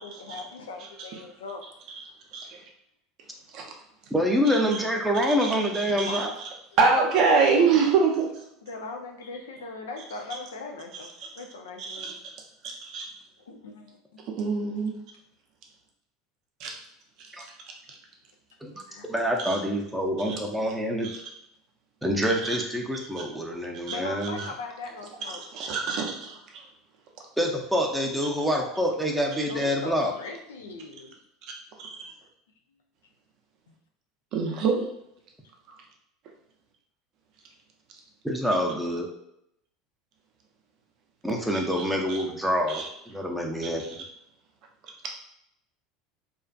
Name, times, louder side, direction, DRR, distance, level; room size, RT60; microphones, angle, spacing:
voice 1, 0.0-1.6 6.1-6.3 6.9-7.9 8.6-12.1 13.5-14.0 18.9-19.1 23.9-25.4 29.5-31.2 33.7-33.8, left 3 dB, 85° left, 3 dB, 0.4 m, -39 dB
voice 2, 4.1-6.3 17.4-17.5 18.6-18.7 19.0-21.1 22.0-24.4 27.4-30.1 38.2-39.1 41.2-44.0, equal, 5° right, 0 dB, 0.5 m, -26 dB
voice 3, 5.3-6.3 6.8-8.3 10.9-11.0 11.8-12.1 12.6-13.1 14.4-14.9 16.6-16.7 19.4-19.6 20.2-20.4 21.0-21.2 23.2-23.3 23.9-24.0 24.4-24.5 25.4-26.6 31.8-32.1 34.3-34.8 35.7-35.8 41.7-42.2 42.7-42.9 45.0-45.1, right 5 dB, 60° right, 1 dB, 0.5 m, -25 dB
2.4 x 2.4 x 2.3 m, 0.77 s
hypercardioid pair, 85°, 0 cm